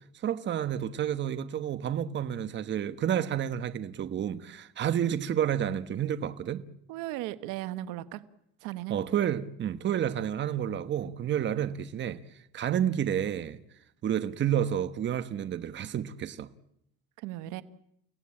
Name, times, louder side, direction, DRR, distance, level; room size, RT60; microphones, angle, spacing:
voice 1, 0.2-6.6 8.9-12.2 12.5-13.6 14.0-16.5, right 10 dB, 40° right, 1.1 m, -30 dB
voice 2, 6.9-8.2 8.6-9.0 11.0-11.1 17.2-17.6, right 15 dB, 85° right, 1.2 m, -36 dB
30.0 x 17.0 x 8.7 m
cardioid pair, 130°, 30 cm